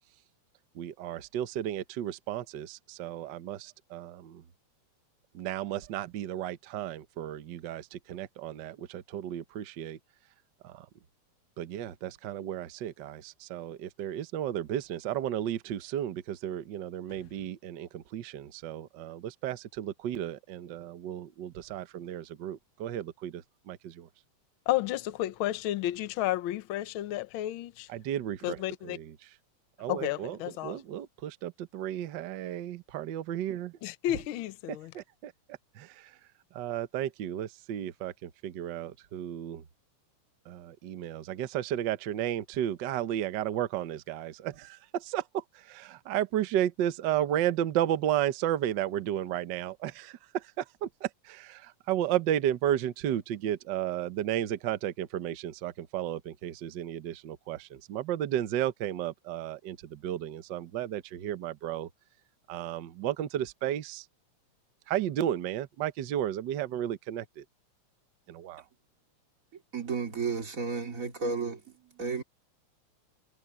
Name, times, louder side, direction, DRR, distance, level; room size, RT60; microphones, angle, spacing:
voice 1, 0.7-4.4 5.3-10.0 10.6-10.9 11.6-24.1 27.9-29.3 29.8-33.8 34.7-36.2 36.5-39.6 40.4-61.9 62.5-64.1 64.9-67.4 68.3-68.6, right 11 dB, 75° right, 1.0 m, -33 dB
voice 2, 24.7-27.9 28.4-29.0 29.9-30.8 33.8-34.9, left 14 dB, 80° left, 1.1 m, -32 dB
voice 3, 69.7-72.2, right 5 dB, 30° right, 2.6 m, -33 dB
omnidirectional pair, 3.4 m